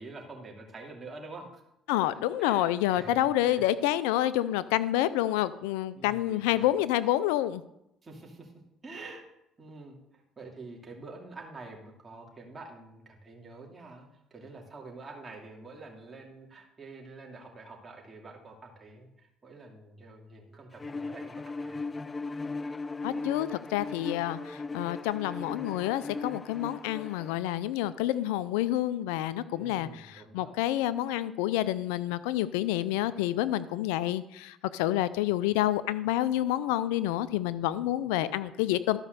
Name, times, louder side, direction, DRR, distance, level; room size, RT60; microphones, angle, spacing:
voice 1, 0.0-1.6 2.4-3.3 3.5-3.6 6.0-6.7 8.0-8.5 8.8-9.2 9.6-21.8 29.5-30.5, right 3 dB, 30° right, -1 dB, 2.8 m, -47 dB
voice 2, 1.9-7.6 23.0-39.0, left 14 dB, 90° left, 16 dB, 0.5 m, -28 dB
Bowed string instrument, 20.8-27.4, left 3 dB, 25° left, 0.5 m, -37 dB
12.5 x 5.3 x 6.8 m, 0.83 s
supercardioid pair, 75°, 0 cm